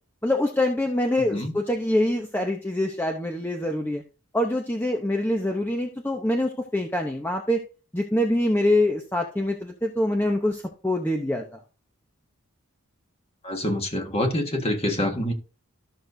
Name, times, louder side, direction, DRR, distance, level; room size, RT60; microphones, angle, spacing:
voice 1, 0.2-4.0 4.3-7.6 7.9-11.6, left 1 dB, 10° left, 0.7 m, -25 dB
voice 2, 13.4-15.3, left 1 dB, 25° left, 1.6 m, -26 dB
13.5 x 6.6 x 2.7 m
head